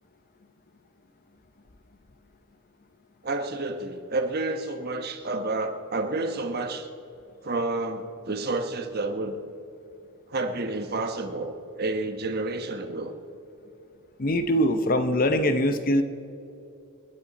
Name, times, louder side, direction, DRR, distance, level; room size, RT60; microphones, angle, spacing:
voice 1, 3.2-6.9 7.4-9.4 10.3-13.1, right 2 dB, 45° right, 6 dB, 1.2 m, -30 dB
voice 2, 14.2-16.0, equal, 40° left, 9 dB, 0.7 m, -22 dB
29.0 x 9.9 x 4.2 m, 2.8 s
head